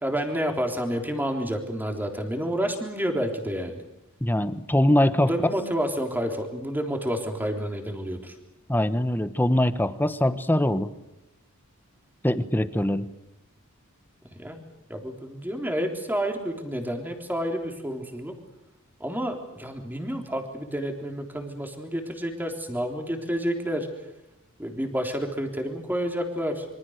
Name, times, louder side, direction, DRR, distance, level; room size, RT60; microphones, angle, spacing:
voice 1, 0.0-3.8 5.2-8.3 14.4-14.6 14.9-18.3 19.0-23.9 24.6-26.7, equal, 10° right, 4 dB, 3.6 m, -29 dB
voice 2, 4.2-5.3 8.7-10.9 12.2-13.1, left 1 dB, 10° left, 12 dB, 1.2 m, -22 dB
26.0 x 24.5 x 6.6 m, 0.93 s
head